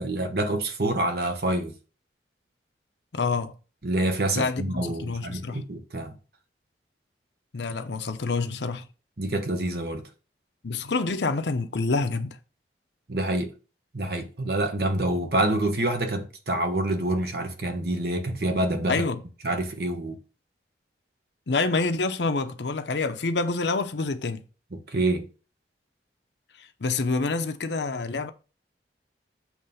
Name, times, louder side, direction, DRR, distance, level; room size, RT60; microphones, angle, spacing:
voice 1, 0.0-1.7 3.8-6.1 9.2-10.0 13.1-13.5 13.9-19.0 19.4-20.2 24.7-25.2, right 1 dB, 60° right, 1.1 m, -27 dB
voice 2, 3.1-3.5 4.3-5.7 7.5-8.9 10.6-12.4 18.9-19.2 21.5-24.4 26.6-28.3, left 3 dB, 80° left, 0.7 m, -27 dB
7.3 x 3.2 x 5.5 m
head